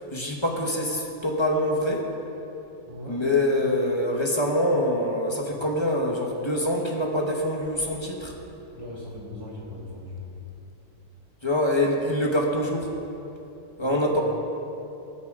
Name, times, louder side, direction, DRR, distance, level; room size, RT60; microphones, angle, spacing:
voice 1, 0.1-2.1 3.1-8.3 11.4-12.9 13.8-14.2, left 1 dB, 20° left, -1 dB, 1.2 m, -25 dB
voice 2, 2.9-3.2 8.7-10.2 13.8-14.1, left 1 dB, 20° right, -6 dB, 2.7 m, -38 dB
19.5 x 8.4 x 3.7 m, 2.9 s
omnidirectional pair, 1.6 m